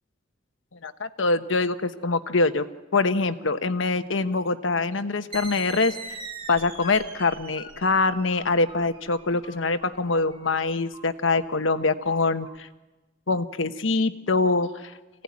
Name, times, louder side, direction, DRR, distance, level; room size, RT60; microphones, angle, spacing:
voice 1, 0.7-2.6 2.9-6.0 6.5-12.7 13.3-15.0, left 3 dB, 80° left, 10 dB, 1.2 m, -24 dB
sound 1, 5.3-12.6, right 3 dB, 30° right, 2.3 m, -42 dB
25.5 x 17.0 x 9.7 m, 1.1 s
head